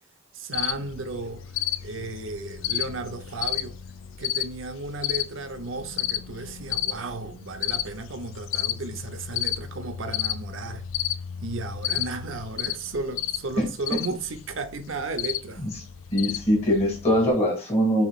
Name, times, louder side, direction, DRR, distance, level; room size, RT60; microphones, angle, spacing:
voice 1, 0.3-1.5 1.8-3.8 4.2-10.8 11.4-15.6, right 3 dB, 85° right, 0.8 m, -34 dB
Cricket, 0.5-17.3, left 12 dB, 85° left, 0.4 m, -32 dB
voice 2, 16.1-18.1, equal, 30° left, 2.0 m, -22 dB
7.0 x 3.1 x 2.4 m
head